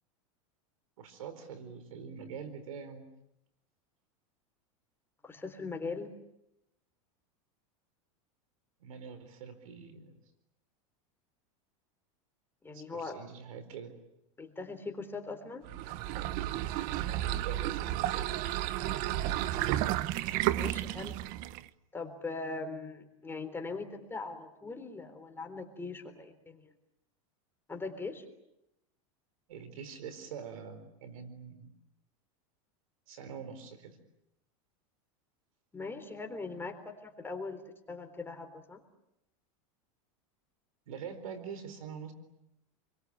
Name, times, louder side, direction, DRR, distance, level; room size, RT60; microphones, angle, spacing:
voice 1, 1.0-3.1 8.8-10.1 12.7-13.9 17.2-18.2 29.5-31.7 33.1-34.0 40.9-42.1, right 6 dB, 80° right, 11 dB, 4.3 m, -44 dB
voice 2, 5.2-6.1 12.6-13.2 14.4-15.7 19.5-20.0 20.5-21.2 21.9-26.7 27.7-28.2 35.7-36.8 37.0-37.6 37.9-38.8, left 3 dB, 15° left, 5 dB, 3.8 m, -40 dB
sound 1, 15.6-21.7, right 14 dB, 55° right, 1.1 m, -32 dB
29.5 x 23.0 x 8.8 m, 0.86 s
supercardioid pair, 120°, 17 cm